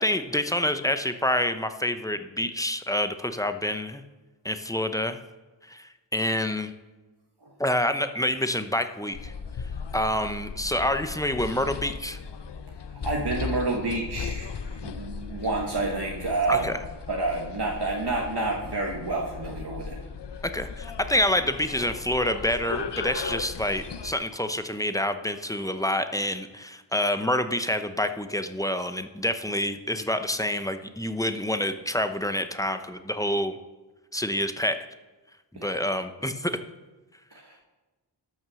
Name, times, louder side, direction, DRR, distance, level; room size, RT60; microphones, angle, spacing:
voice 1, 0.0-4.0 4.4-5.2 5.6-6.7 7.6-9.3 9.9-12.2 16.5-16.8 20.4-33.6 34.1-34.8 35.6-36.6, left 1 dB, 10° left, 9 dB, 0.8 m, -27 dB
sound 1, 9.1-24.1, left 5 dB, 65° left, 0.7 m, -37 dB
voice 2, 13.0-16.7 17.1-20.0 35.5-35.7 37.3-37.7, right 3 dB, 60° right, -1 dB, 1.4 m, -29 dB
12.5 x 6.1 x 6.3 m, 1.2 s
wide cardioid pair, 40°, 44 cm